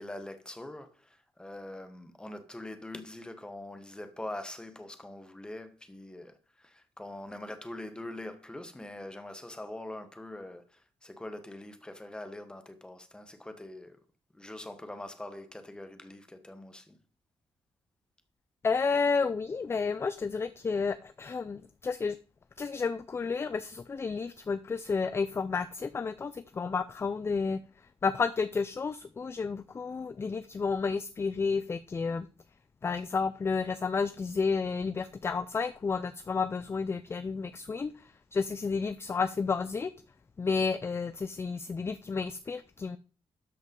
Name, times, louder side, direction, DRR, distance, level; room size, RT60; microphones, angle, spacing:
voice 1, 0.0-14.0 14.3-17.0, left 1 dB, 10° left, 1.3 m, -43 dB
voice 2, 18.6-22.2 22.6-27.6 28.0-32.3 32.8-37.9 38.3-39.9 40.4-43.0, left 5 dB, 25° left, 0.4 m, -31 dB
12.5 x 5.2 x 5.3 m
cardioid pair, 140°, 10 cm